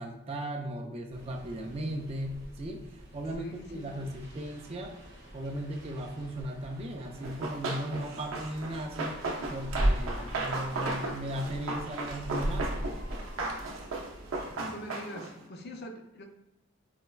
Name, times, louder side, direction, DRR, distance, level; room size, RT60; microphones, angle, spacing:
voice 1, 0.0-2.8 3.1-5.0 5.3-9.2 9.5-12.9, right 1 dB, 30° right, 1 dB, 0.4 m, -37 dB
sound 1, 1.1-14.5, right 1 dB, 50° right, 0.9 m, -38 dB
voice 2, 3.4-3.9 10.2-10.3 14.6-16.3, equal, 50° left, 4 dB, 0.4 m, -43 dB
Run, 7.2-15.4, right 2 dB, 85° right, 0.5 m, -36 dB
4.1 x 2.0 x 2.3 m, 0.89 s
head